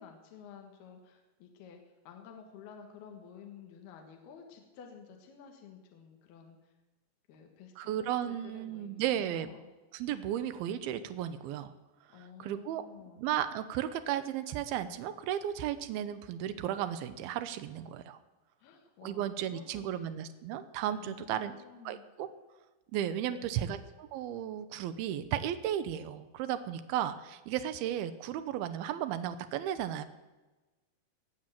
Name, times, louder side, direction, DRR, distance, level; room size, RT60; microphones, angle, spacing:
voice 1, 0.0-6.7 7.3-9.7 12.1-13.3 18.6-20.1 20.9-22.0 23.3-23.7, left 7 dB, 65° left, 3 dB, 3.3 m, -52 dB
voice 2, 7.8-9.5 9.9-11.7 12.4-12.9 13.2-18.2 19.0-21.5 21.9-22.3 22.9-30.1, right 10 dB, 90° right, 10 dB, 2.2 m, -34 dB
19.0 x 7.5 x 7.5 m, 1.2 s
omnidirectional pair, 5.1 m